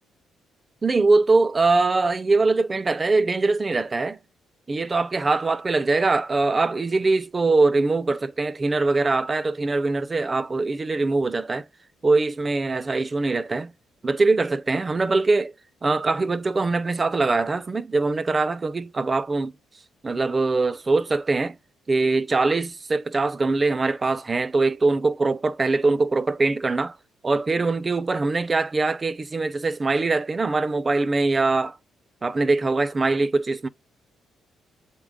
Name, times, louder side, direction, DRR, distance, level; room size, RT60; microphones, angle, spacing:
voice 1, 0.8-4.2 4.7-11.7 12.0-13.7 14.0-15.5 15.8-19.5 20.0-21.6 21.9-27.0 27.2-31.8 32.2-33.7, right 3 dB, 30° right, 0.5 m, -22 dB
7.7 x 3.7 x 3.6 m
cardioid pair, 90°, 0 cm